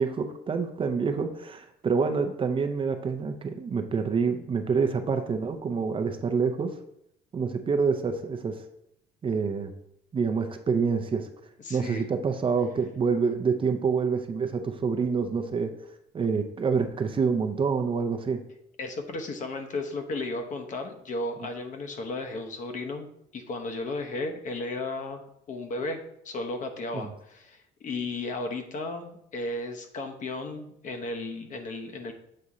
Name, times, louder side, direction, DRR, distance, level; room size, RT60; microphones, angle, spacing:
voice 1, 0.0-6.7 7.3-8.6 9.2-9.7 10.1-11.3 11.7-15.7 16.1-18.4 26.9-27.1, right 5 dB, 30° right, 6 dB, 0.6 m, -27 dB
voice 2, 11.6-12.1 18.8-23.1 23.3-32.1, left 2 dB, 50° left, 5 dB, 0.8 m, -34 dB
7.5 x 2.8 x 4.8 m, 0.75 s
cardioid pair, 110°, 17 cm